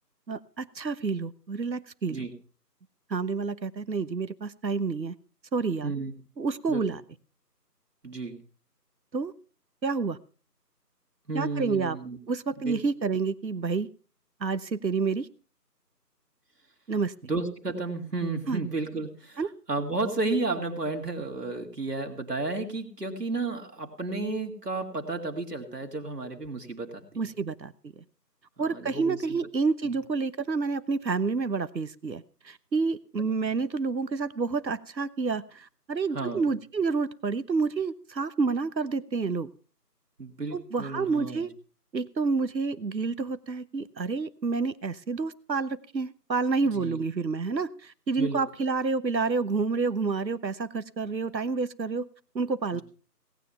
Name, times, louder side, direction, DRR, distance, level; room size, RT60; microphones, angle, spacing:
voice 1, 0.3-2.3 3.1-5.1 5.5-5.9 6.4-7.0 9.1-9.3 9.8-10.2 11.3-12.0 12.3-13.9 14.4-15.3 16.9-17.1 18.5-18.6 19.4-19.5 27.2-27.9 28.6-39.5 40.5-41.5 41.9-52.1 52.3-52.8, right 4 dB, 85° right, 15 dB, 1.2 m, -29 dB
voice 2, 8.0-8.4 11.3-12.2 12.6-12.8 17.2-19.4 19.7-27.0 28.7-29.4 36.1-36.4 40.2-41.5 46.7-47.0 48.2-48.4 52.7-52.8, right 3 dB, 70° right, 3 dB, 2.6 m, -32 dB
18.0 x 9.4 x 5.6 m, 0.39 s
figure-of-eight pair, 180°, 50 cm